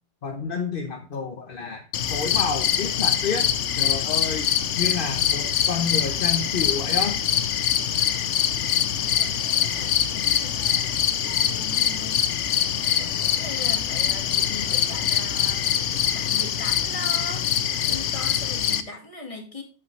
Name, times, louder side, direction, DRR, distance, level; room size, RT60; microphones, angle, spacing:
voice 1, 0.2-1.8 2.1-3.4 3.7-7.2, left 5 dB, 50° left, 3 dB, 1.2 m, -29 dB
sound 1, 1.9-18.8, left 9 dB, 90° left, 1.1 m, -24 dB
voice 2, 9.0-12.2 12.6-17.5 17.8-19.6, left 3 dB, 30° left, 2 dB, 2.1 m, -40 dB
8.4 x 8.0 x 3.2 m, 0.37 s
omnidirectional pair, 1.2 m